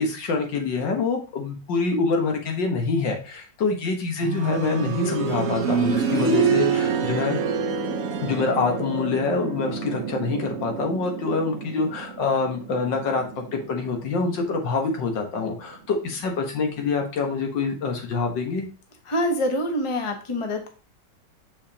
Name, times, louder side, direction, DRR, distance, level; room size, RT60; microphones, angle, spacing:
voice 1, 0.0-7.4 8.2-18.7, left 4 dB, 85° left, 3 dB, 2.0 m, -26 dB
sound 1, 4.2-15.0 16.4-16.5, right 5 dB, 55° right, 1.1 m, -27 dB
voice 2, 19.1-20.7, equal, 20° left, 4 dB, 0.8 m, -25 dB
6.8 x 5.5 x 2.9 m, 0.36 s
omnidirectional pair, 1.9 m